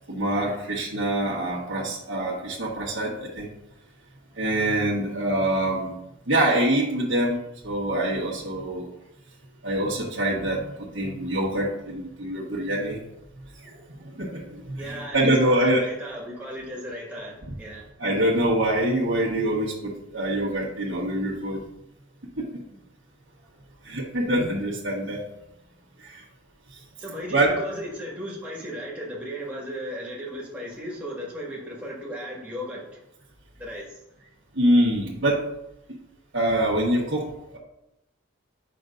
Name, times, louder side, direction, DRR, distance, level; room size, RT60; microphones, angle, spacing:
voice 1, 0.1-3.5 4.3-6.0 6.3-8.9 9.6-13.0 13.6-15.8 18.0-21.6 22.4-22.5 23.8-25.2 26.0-26.2 27.3-27.6 34.5-35.4 36.3-37.2 37.5-37.6, right 1 dB, 70° right, -7 dB, 1.3 m, -25 dB
voice 2, 14.8-17.9 27.0-33.0 33.6-34.0, equal, 5° right, -5 dB, 1.7 m, -36 dB
7.8 x 6.1 x 2.6 m, 0.87 s
head